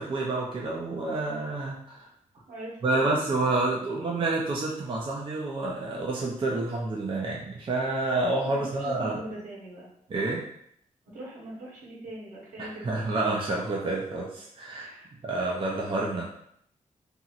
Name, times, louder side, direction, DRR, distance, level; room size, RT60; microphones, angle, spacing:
voice 1, 0.0-2.1 2.8-9.2 10.1-10.4 12.6-14.9 15.2-16.3, right 2 dB, 40° right, -3 dB, 0.5 m, -29 dB
voice 2, 2.5-4.2 8.4-9.9 11.1-13.0 14.7-15.1, right 1 dB, 90° right, -6 dB, 1.1 m, -42 dB
2.9 x 2.8 x 2.4 m, 0.68 s
wide cardioid pair, 155°, 14 cm